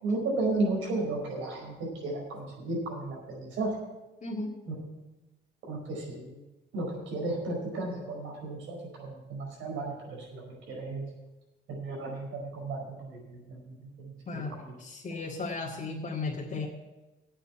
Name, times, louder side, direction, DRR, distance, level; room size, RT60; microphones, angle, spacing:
voice 1, 0.0-3.8 4.7-4.8 5.6-6.4 6.7-11.0 11.7-14.7, right 2 dB, 85° right, -1 dB, 5.1 m, -34 dB
voice 2, 4.2-4.5 14.3-16.7, left 3 dB, 40° left, -3 dB, 1.8 m, -35 dB
8.8 x 7.9 x 8.5 m, 1.1 s
cardioid pair, 90°, 20 cm